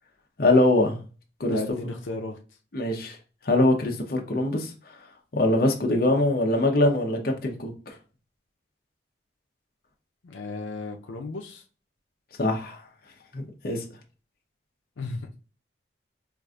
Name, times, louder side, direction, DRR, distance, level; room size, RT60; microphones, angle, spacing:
voice 1, 0.4-1.0 1.4-1.6 2.7-3.2 3.4-4.7 5.3-7.9 12.4-12.8 13.3-13.8, left 1 dB, 50° left, 0.7 m, -23 dB
voice 2, 1.4-2.4 10.2-11.6 15.0-15.3, left 3 dB, 90° left, 0.5 m, -34 dB
4.7 x 2.5 x 2.3 m
head